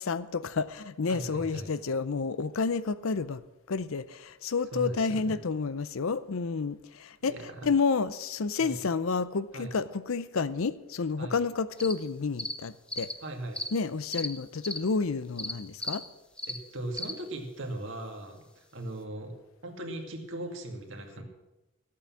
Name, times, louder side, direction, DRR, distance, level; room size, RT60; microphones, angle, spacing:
voice 1, 0.0-3.4 3.7-7.3 7.6-13.1 13.7-16.0, left 4 dB, 70° left, 16 dB, 0.6 m, -30 dB
voice 2, 1.1-1.7 4.7-5.3 7.2-7.7 8.6-8.8 9.5-9.7 11.2-11.4 13.2-13.6 16.4-19.3 19.6-21.2, right 1 dB, 60° right, 3 dB, 2.2 m, -38 dB
sound 1, 11.8-11.9 12.4-12.5 12.9-13.1 13.5-13.7 14.1-14.3 14.6-14.8 15.4-15.5 15.8-16.0 16.4-16.6 16.9-17.1, left 1 dB, 5° left, 0.7 m, -34 dB
14.0 x 8.6 x 7.4 m, 1.0 s
head